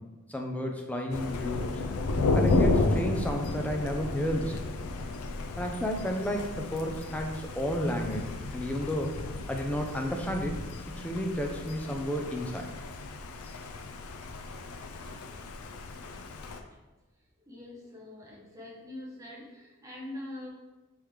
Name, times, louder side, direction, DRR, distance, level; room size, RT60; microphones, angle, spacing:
voice 1, 0.3-1.8 2.3-4.7 5.6-9.2 9.5-10.6 11.0-12.7, equal, 5° left, 2 dB, 0.4 m, -32 dB
Thunder, 1.1-16.6, left 3 dB, 75° left, 0.4 m, -32 dB
voice 2, 17.4-20.5, left 1 dB, 15° right, -3 dB, 0.8 m, -43 dB
4.8 x 3.5 x 3.1 m, 1.1 s
head